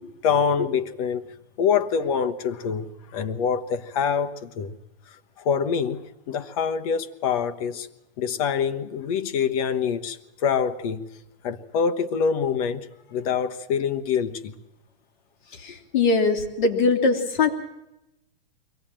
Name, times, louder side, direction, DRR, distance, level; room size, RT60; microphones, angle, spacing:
voice 1, 0.2-1.3 1.6-4.8 5.4-7.9 8.2-11.1 11.4-14.5, left 6 dB, 40° left, 1.2 m, -25 dB
voice 2, 15.6-17.5, left 4 dB, 55° left, 3.1 m, -21 dB
23.0 x 17.5 x 8.9 m
supercardioid pair, 165°, 29 cm